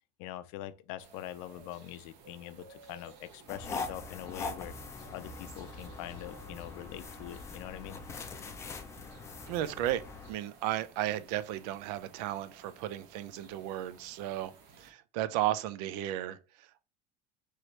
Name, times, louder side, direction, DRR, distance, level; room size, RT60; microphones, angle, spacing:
voice 1, 0.2-4.7 5.1-8.0, left 13 dB, 70° left, 0.5 m, -44 dB
sound 1, 1.0-14.9, right 4 dB, 65° right, 1.2 m, -56 dB
sound 2, 3.5-10.3, left 4 dB, 15° left, 0.4 m, -42 dB
voice 2, 9.5-14.5 14.8-16.4, right 13 dB, 85° right, 0.5 m, -34 dB
4.6 x 3.0 x 3.0 m
cardioid pair, 175°, 20 cm